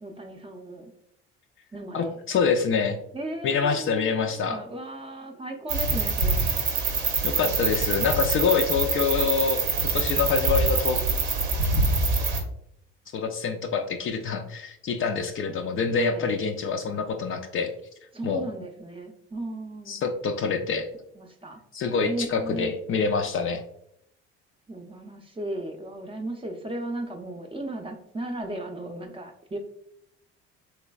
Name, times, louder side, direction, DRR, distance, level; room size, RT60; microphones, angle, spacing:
voice 1, 0.0-0.8 1.7-2.1 3.1-6.5 7.4-8.0 15.9-16.3 18.1-20.0 21.2-21.6 22.0-22.7 24.7-29.6, right 1 dB, 15° right, 2 dB, 0.6 m, -36 dB
voice 2, 1.9-3.0 3.4-4.6 7.2-9.6 9.9-11.0 13.1-17.7 18.2-18.4 19.9-20.9 21.7-23.6, left 5 dB, 45° left, 5 dB, 0.4 m, -26 dB
sound 1, 5.7-12.4, right 3 dB, 80° right, 0.8 m, -25 dB
3.2 x 3.1 x 2.3 m, 0.75 s
supercardioid pair, 70°, 31 cm